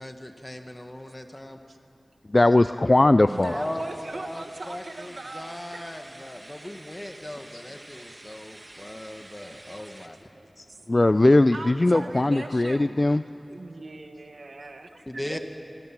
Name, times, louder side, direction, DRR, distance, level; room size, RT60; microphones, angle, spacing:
voice 1, 0.0-1.6 3.5-10.2 15.0-15.4, left 1 dB, 25° left, 5 dB, 1.6 m, -38 dB
voice 2, 2.3-3.5 7.5-7.6 10.6-13.2, left 2 dB, 45° left, 12 dB, 0.4 m, -20 dB
sound 1, 3.3-10.1, right 1 dB, 45° right, 2.1 m, -48 dB
voice 3, 3.3-6.1 7.0-7.1 10.4-10.8 11.2-13.0 13.5-15.4, right 2 dB, 80° right, 6 dB, 1.4 m, -40 dB
26.5 x 21.5 x 6.0 m, 2.9 s
wide cardioid pair, 45°, 0 cm